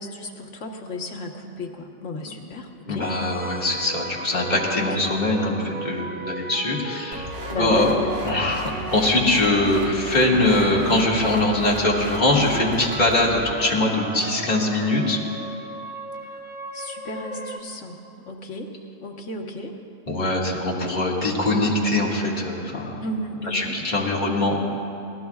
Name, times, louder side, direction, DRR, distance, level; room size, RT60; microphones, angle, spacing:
voice 1, 0.0-3.1 4.7-5.0 7.5-8.1 16.2-16.4 16.7-18.7 19.0-19.7 23.0-23.7, left 2 dB, 65° left, 2 dB, 1.5 m, -34 dB
voice 2, 2.9-7.3 7.6-8.0 8.2-15.2 20.1-23.0 23.4-24.6, left 2 dB, 35° left, -4 dB, 2.0 m, -22 dB
sound 1, 3.0-10.0 10.4-17.6, right 3 dB, 10° right, 0.5 m, -37 dB
sound 2, 7.1-13.3, equal, 65° right, 2.0 m, -36 dB
25.0 x 18.5 x 2.4 m, 2.7 s
omnidirectional pair, 1.3 m